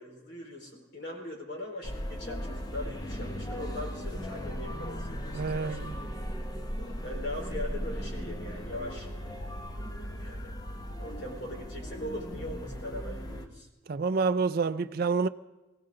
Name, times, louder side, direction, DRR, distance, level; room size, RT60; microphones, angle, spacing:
voice 1, 0.0-6.1 7.0-10.5 11.0-13.7, left 1 dB, 60° left, 4.2 m, -41 dB
sound 1, 1.8-13.5, equal, 20° left, 1.0 m, -37 dB
voice 2, 5.3-5.9 13.9-15.3, right 4 dB, 50° right, 0.4 m, -28 dB
24.0 x 15.5 x 3.8 m
head